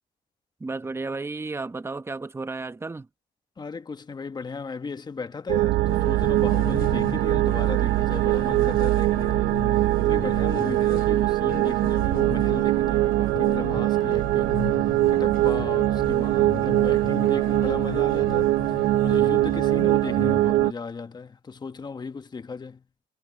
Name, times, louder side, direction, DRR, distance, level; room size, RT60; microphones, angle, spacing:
voice 1, 0.6-3.1, right 3 dB, 15° right, 1.1 m, -33 dB
voice 2, 3.6-9.5 10.0-14.6 15.1-22.8, left 4 dB, 25° left, 1.2 m, -36 dB
sound 1, 5.5-20.7, right 16 dB, 85° right, 0.7 m, -22 dB
sound 2, 5.9-20.5, left 11 dB, 65° left, 4.4 m, -38 dB
cardioid pair, 110°, 17 cm